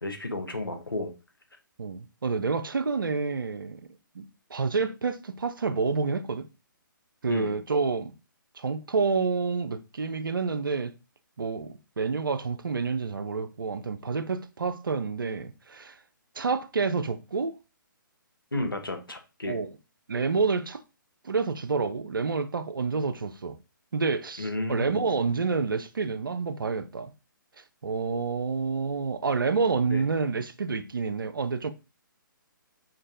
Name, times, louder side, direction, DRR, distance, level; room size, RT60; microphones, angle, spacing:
voice 1, 0.0-1.1 7.3-7.6 18.5-19.6 24.4-25.0 29.8-30.0, left 2 dB, 90° left, 0.8 m, -32 dB
voice 2, 1.8-3.9 4.1-4.3 4.5-6.5 7.2-8.1 8.6-10.9 11.4-16.0 16.4-17.6 19.5-19.7 20.1-20.8 21.2-23.6 23.9-27.1 27.8-31.7, right 4 dB, 75° right, 0.4 m, -28 dB
5.1 x 2.3 x 2.6 m
figure-of-eight pair, 135°, 11 cm